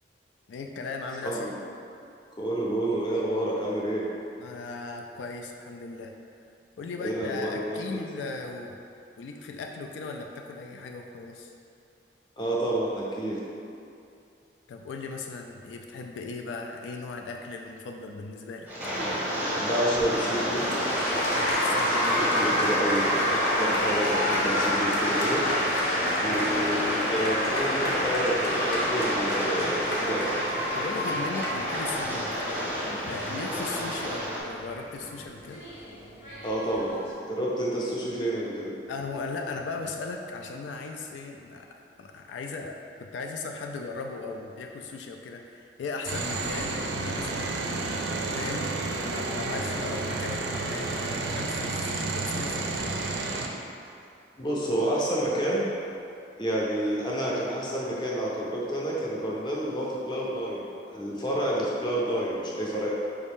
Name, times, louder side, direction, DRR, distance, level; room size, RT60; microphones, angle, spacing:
voice 1, 0.5-1.5 4.4-6.1 6.8-8.8 9.2-11.5 14.7-18.7 21.3-22.1 26.2-26.8 30.7-32.3 33.1-35.6 38.9-48.7 49.0-52.9, left 3 dB, 85° left, 2 dB, 0.3 m, -37 dB
voice 2, 1.2-1.5 2.4-4.0 7.0-8.0 12.4-13.4 19.6-20.7 21.7-25.4 26.2-30.4 36.4-37.0 37.2-38.7 54.4-55.6 56.4-62.9, right 1 dB, 25° left, -5 dB, 0.6 m, -29 dB
Rain, 18.7-34.4, equal, 10° right, 0.7 m, -31 dB
Applause, 20.0-37.1, left 1 dB, 70° left, 0.8 m, -29 dB
sound 1, 46.1-53.5, right 3 dB, 75° right, 0.4 m, -31 dB
4.8 x 2.6 x 3.5 m, 2.6 s
head